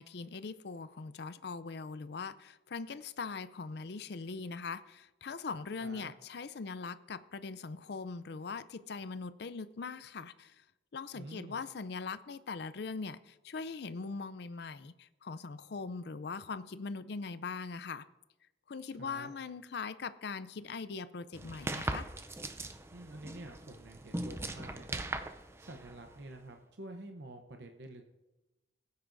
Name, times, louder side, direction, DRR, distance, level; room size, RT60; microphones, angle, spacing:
voice 1, 0.0-10.6 10.9-18.0 18.7-22.1, left 4 dB, 60° left, 14 dB, 0.5 m, -41 dB
voice 2, 5.8-6.2 11.1-11.6 18.9-19.3 22.9-28.0, right 2 dB, 60° right, 5 dB, 0.8 m, -49 dB
sound 1, 21.3-26.4, right 2 dB, 15° right, 0.4 m, -40 dB
18.5 x 9.6 x 2.6 m, 1.0 s
head